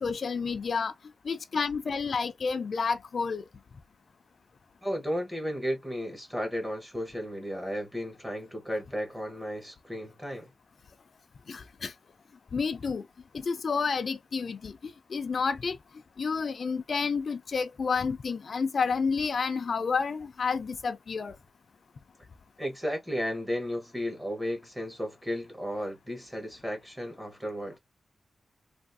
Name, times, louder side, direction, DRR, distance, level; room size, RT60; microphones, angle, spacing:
voice 1, 0.0-0.9 1.2-3.4 11.5-11.9 12.5-13.1 13.3-15.8 16.2-21.3, left 5 dB, 55° left, 0.4 m, -30 dB
voice 2, 4.8-10.5 22.6-27.8, equal, 10° right, 0.9 m, -34 dB
3.4 x 2.4 x 2.5 m
wide cardioid pair, 140°, 0 cm